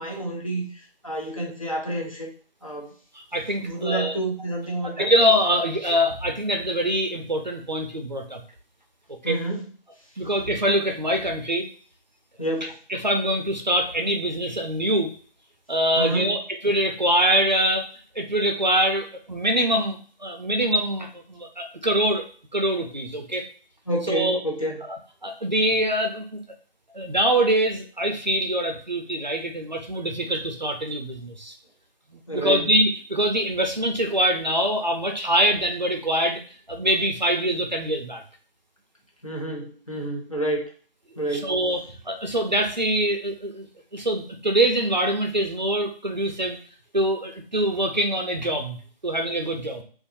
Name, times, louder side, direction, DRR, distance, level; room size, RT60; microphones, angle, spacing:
voice 1, 0.0-2.3 2.6-2.9 3.6-5.1 5.5-5.6 9.2-9.7 12.4-12.8 15.9-16.3 23.9-24.8 32.3-32.7 39.2-40.6 41.2-41.5, right 1 dB, 35° left, -3 dB, 0.8 m, -29 dB
voice 2, 3.1-4.1 4.8-8.4 9.2-9.4 10.2-11.7 12.6-15.1 15.7-17.9 18.1-22.2 22.5-23.5 24.1-24.4 24.8-25.0 25.2-26.4 26.9-31.5 32.1-36.4 36.7-38.2 41.3-43.7 43.9-46.6 46.9-49.8, right 1 dB, 45° right, 4 dB, 0.6 m, -24 dB
3.9 x 2.5 x 2.6 m, 0.44 s
figure-of-eight pair, 180°, 31 cm